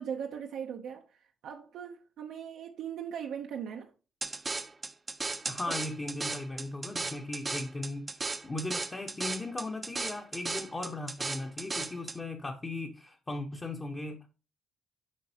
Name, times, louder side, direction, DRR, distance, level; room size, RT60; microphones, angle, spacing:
voice 1, 0.0-3.9, right 8 dB, 75° right, 0.8 m, -39 dB
sound 1, 4.2-12.2, right 3 dB, 25° right, 0.6 m, -36 dB
voice 2, 5.5-14.3, left 2 dB, 25° left, 1.1 m, -38 dB
7.5 x 5.2 x 2.9 m
cardioid pair, 90°, 0 cm